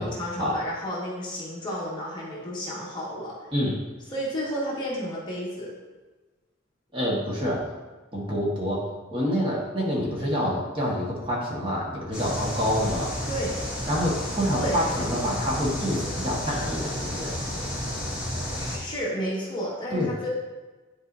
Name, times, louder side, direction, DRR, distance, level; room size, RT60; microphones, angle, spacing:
voice 1, 0.0-3.5 4.1-5.7 13.2-13.5 14.5-14.7 18.5-20.3, equal, 25° left, -6 dB, 1.5 m, -32 dB
voice 2, 6.9-7.7 8.1-13.1 13.9-17.4 19.9-20.1, equal, 25° right, -5 dB, 1.4 m, -27 dB
sound 1, 12.1-18.8, left 1 dB, 5° right, 2.2 m, -31 dB
10.5 x 4.6 x 2.6 m, 1.2 s
head